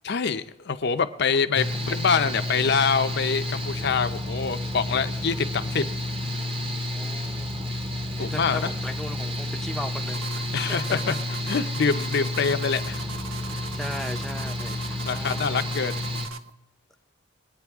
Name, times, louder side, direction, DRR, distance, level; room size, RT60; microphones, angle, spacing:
voice 1, 0.0-5.8 8.2-8.7 10.5-11.1 11.5-13.0 15.0-16.0, left 5 dB, 60° left, 9 dB, 0.6 m, -25 dB
Mechanical fan, 1.5-16.3, left 1 dB, 30° right, 1.0 m, -30 dB
voice 2, 6.9-7.7 8.2-10.6 13.7-15.6, left 1 dB, ahead, 3 dB, 0.6 m, -38 dB
sound 1, 10.1-16.5, right 4 dB, 85° right, 0.6 m, -40 dB
22.0 x 9.1 x 3.6 m, 0.86 s
head